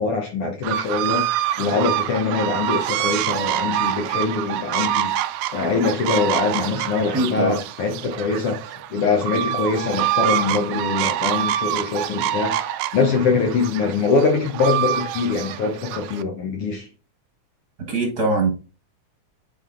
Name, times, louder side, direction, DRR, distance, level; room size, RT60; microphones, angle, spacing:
voice 1, 0.0-5.1 5.5-12.6 12.9-16.9, left 4 dB, 65° left, 1.6 m, -23 dB
sound 1, 0.6-16.2, right 12 dB, 80° right, 1.7 m, -26 dB
voice 2, 6.9-7.6 17.9-18.5, right 2 dB, 45° right, 1.5 m, -22 dB
8.5 x 4.1 x 3.8 m
omnidirectional pair, 3.5 m